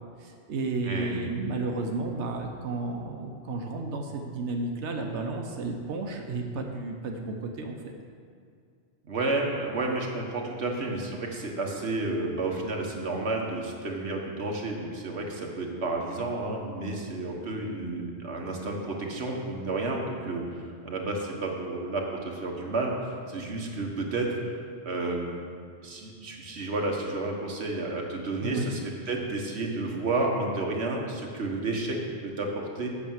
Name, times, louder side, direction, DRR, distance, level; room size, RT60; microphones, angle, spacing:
voice 1, 0.2-7.9 28.4-28.7, right 3 dB, 90° right, 3 dB, 1.1 m, -32 dB
voice 2, 0.8-1.3 9.0-24.5 24.8-25.3 25.8-32.9, right 2 dB, 75° right, 0 dB, 1.6 m, -31 dB
8.8 x 6.1 x 7.2 m, 2.3 s
omnidirectional pair, 1.1 m